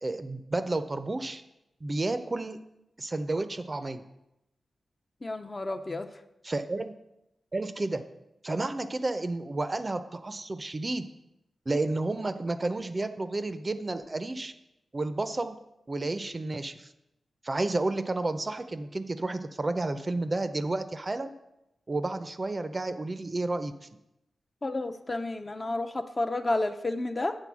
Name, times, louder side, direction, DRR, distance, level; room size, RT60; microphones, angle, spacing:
voice 1, 0.0-1.4 1.8-2.6 3.0-4.0 6.4-6.9 7.5-8.0 8.4-11.0 11.7-14.5 14.9-15.5 15.9-16.9 17.4-21.3 21.9-23.7, right 2 dB, 30° right, 10 dB, 0.5 m, -31 dB
voice 2, 5.2-6.1 24.6-27.3, left 2 dB, 30° left, 7 dB, 0.5 m, -31 dB
8.3 x 3.9 x 6.1 m, 0.87 s
wide cardioid pair, 95°, 0 cm